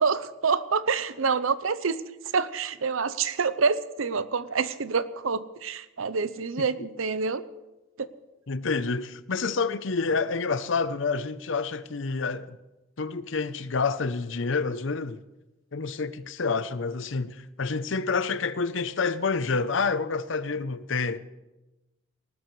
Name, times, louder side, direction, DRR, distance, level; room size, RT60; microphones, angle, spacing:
voice 1, 0.0-2.0 2.3-7.4 8.0-8.1, right 5 dB, 85° right, 0.7 m, -27 dB
voice 2, 8.5-12.6 13.0-15.2 15.7-21.2, left 4 dB, 70° left, 0.7 m, -28 dB
19.0 x 19.0 x 3.2 m
head